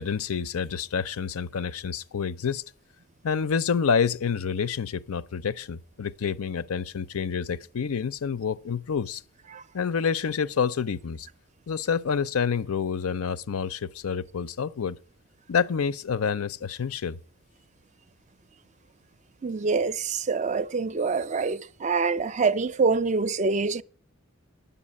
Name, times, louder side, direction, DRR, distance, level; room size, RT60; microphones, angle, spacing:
voice 1, 0.0-2.6 3.2-9.2 9.7-11.3 11.7-15.0 15.5-17.2, left 6 dB, 90° left, 0.6 m, -28 dB
voice 2, 19.4-23.8, right 4 dB, 35° right, 0.4 m, -25 dB
10.0 x 7.0 x 8.4 m
head